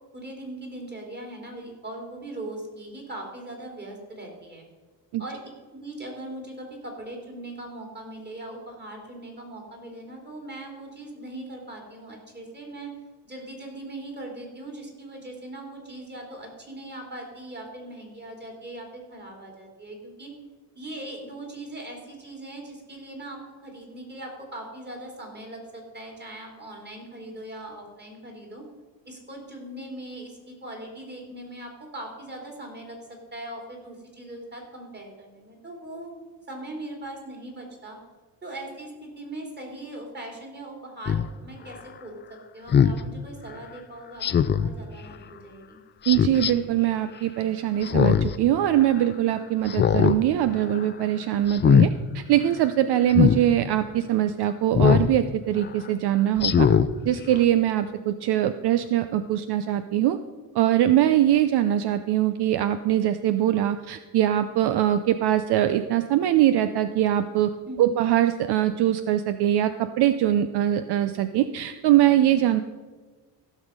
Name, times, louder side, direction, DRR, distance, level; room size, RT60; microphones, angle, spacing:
voice 1, 0.1-4.7 5.2-5.4 5.7-12.9 13.2-20.3 20.7-28.6 29.0-33.0 33.3-36.2 36.5-38.0 38.4-45.8 67.7-68.0, right 1 dB, 25° right, 1 dB, 3.1 m, -40 dB
Speech synthesizer, 41.1-41.2 42.7-43.0 44.2-44.7 46.0-46.5 47.8-48.3 48.7-48.8 49.7-50.2 50.6-50.9 51.5-51.9 53.1-53.4 54.7-55.1 55.6-55.7 56.4-56.9 57.3-57.4, left 8 dB, 30° left, 0.4 m, -20 dB
voice 2, 46.1-56.7 57.1-60.2 60.6-67.5 67.8-72.6, right 12 dB, 70° right, 11 dB, 0.6 m, -22 dB
15.5 x 6.4 x 5.2 m, 1.3 s
cardioid pair, 115°, 41 cm